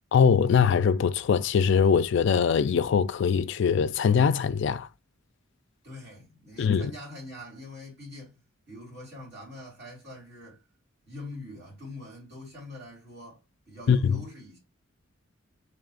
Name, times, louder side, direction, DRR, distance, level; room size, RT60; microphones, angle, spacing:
voice 1, 0.1-4.9 6.6-6.9 13.9-14.2, left 6 dB, 60° left, 0.3 m, -22 dB
voice 2, 5.8-8.4 8.7-10.6 11.1-13.4 13.7-14.6, left 1 dB, 55° right, 3.1 m, -44 dB
3.5 x 3.3 x 3.8 m
head